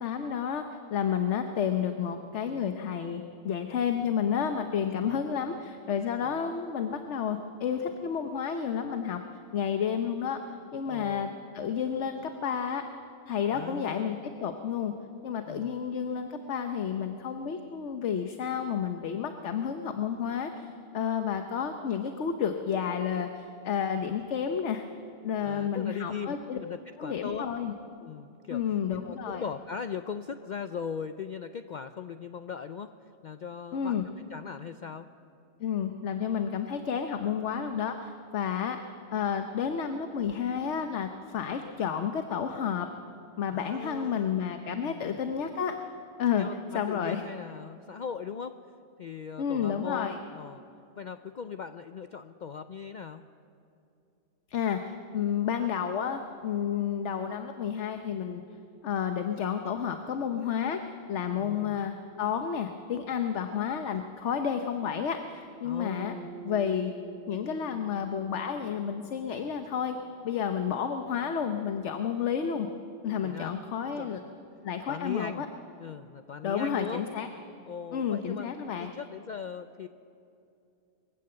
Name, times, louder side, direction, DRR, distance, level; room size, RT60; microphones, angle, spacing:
voice 1, 0.0-9.2 9.5-10.4 10.7-11.3 11.5-12.8 13.3-14.9 15.2-24.9 25.2-26.6 27.0-27.7 28.5-29.4 33.7-34.0 35.6-38.8 39.1-42.9 43.4-45.8 46.2-46.5 46.7-47.2 49.4-50.2 54.5-58.4 58.8-60.8 61.1-66.1 66.4-66.9 67.3-70.0 70.2-72.7 73.0-74.2 74.6-75.5 76.4-77.3 77.9-78.9, left 7 dB, 75° left, 7 dB, 1.2 m, -31 dB
voice 2, 10.9-11.3 13.5-14.2 15.5-15.8 25.4-27.5 28.0-28.6 28.9-32.9 33.2-34.0 34.3-35.1 43.5-44.4 44.8-45.2 46.4-48.6 49.0-50.6 51.0-53.2 61.4-61.9 65.6-66.3 73.2-73.5 74.0-74.2 74.9-75.5 75.8-77.0 77.6-79.9, left 6 dB, 50° left, 9 dB, 0.6 m, -39 dB
Bass guitar, 65.8-70.1, right 4 dB, ahead, 4.7 m, -48 dB
22.0 x 15.5 x 7.8 m, 2.6 s
omnidirectional pair, 1.2 m